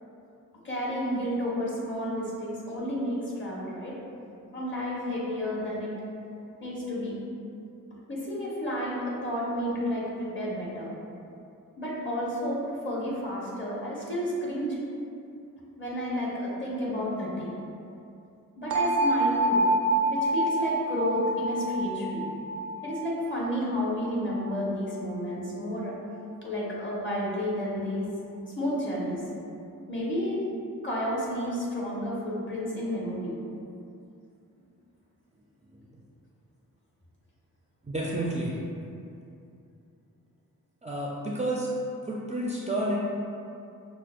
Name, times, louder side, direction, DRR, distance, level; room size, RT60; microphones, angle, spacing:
voice 1, 0.6-3.9 4.5-5.9 6.6-7.1 7.9-10.9 11.8-14.8 15.8-17.5 18.6-19.6 20.1-22.3 22.8-26.0 26.4-28.1 28.4-29.2 29.9-30.4 30.8-33.4, equal, 35° left, -5 dB, 1.2 m, -31 dB
sound 1, 18.7-24.5, right 1 dB, 75° right, 0.6 m, -27 dB
voice 2, 37.8-38.6 40.8-41.7 42.0-43.0, right 1 dB, 20° right, -5 dB, 0.5 m, -30 dB
5.9 x 2.1 x 2.5 m, 2.6 s
cardioid pair, 60°, 35 cm